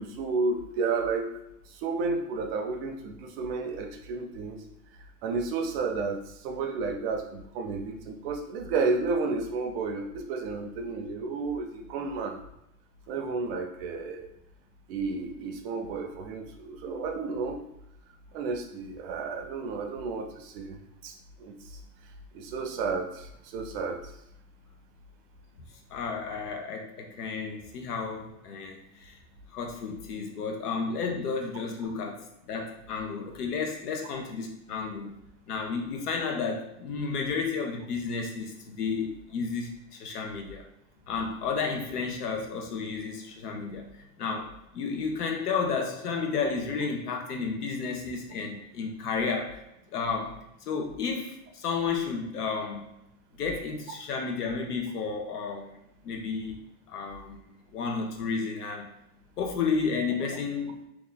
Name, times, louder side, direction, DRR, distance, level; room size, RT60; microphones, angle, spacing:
voice 1, 0.0-1.3 1.7-4.6 5.2-12.4 13.1-14.3 14.9-17.6 18.3-21.5 22.3-24.0, right 4 dB, 40° right, 4 dB, 0.5 m, -32 dB
voice 2, 25.9-29.2 29.5-35.2 35.5-40.7 41.1-43.9 44.2-49.6 49.9-50.4 50.7-52.9 53.4-55.8 56.0-56.6 56.9-57.4 57.7-58.9 59.4-60.8, left 5 dB, 85° left, 2 dB, 0.9 m, -32 dB
2.9 x 2.4 x 3.8 m, 0.82 s
supercardioid pair, 135°, 45 cm